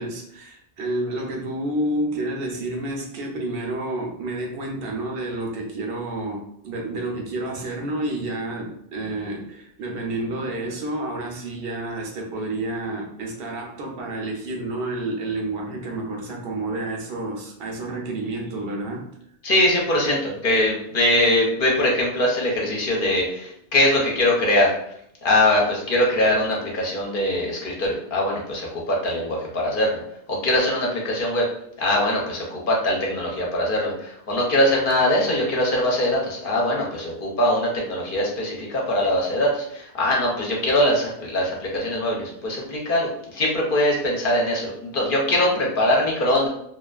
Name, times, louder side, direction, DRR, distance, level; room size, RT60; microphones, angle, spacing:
voice 1, 0.0-19.1, right 2 dB, 70° right, 0 dB, 0.8 m, -29 dB
voice 2, 19.4-24.7 25.2-30.0 30.3-31.5 31.8-46.5, left 1 dB, 60° left, -3 dB, 0.8 m, -22 dB
2.4 x 2.3 x 2.3 m, 0.73 s
omnidirectional pair, 1.0 m